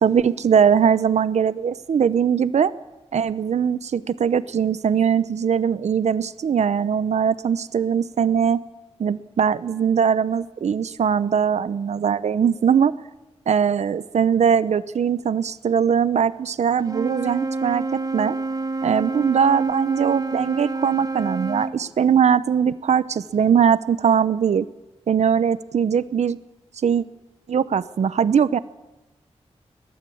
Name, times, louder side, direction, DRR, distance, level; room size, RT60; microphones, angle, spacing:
voice 1, 0.0-2.7 3.1-8.6 9.0-12.9 13.5-17.8 18.1-18.4 18.8-24.7 25.1-26.4 26.8-27.0 27.5-28.6, right 7 dB, 85° right, 16 dB, 0.8 m, -20 dB
Wind instrument woodwind instrument, 16.8-21.8, right 3 dB, 30° right, 1.5 m, -28 dB
22.0 x 18.5 x 8.6 m, 1.1 s
wide cardioid pair, 105°, 11 cm